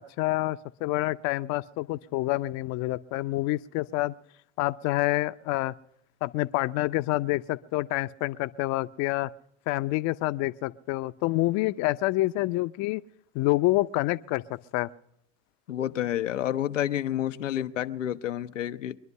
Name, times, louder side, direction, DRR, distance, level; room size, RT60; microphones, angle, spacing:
voice 1, 0.0-4.1 4.6-5.7 6.2-9.3 9.7-13.0 13.3-14.9, left 18 dB, 50° left, 0.6 m, -27 dB
voice 2, 15.7-19.0, left 11 dB, 90° left, 0.6 m, -29 dB
23.5 x 11.0 x 5.4 m
hypercardioid pair, 80°, 36 cm